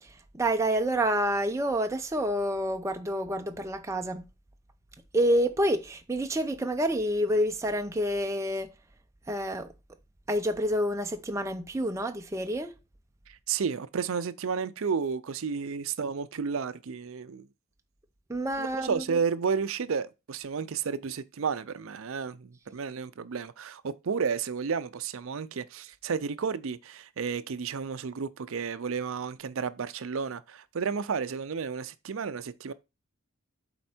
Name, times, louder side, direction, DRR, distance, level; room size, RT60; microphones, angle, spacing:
voice 1, 0.0-4.2 5.1-8.7 9.3-9.7 10.3-12.7 18.3-19.2, equal, 15° right, 0.5 m, -28 dB
voice 2, 13.3-17.5 18.6-32.7, right 6 dB, 65° right, 0.5 m, -32 dB
7.8 x 4.3 x 4.3 m
head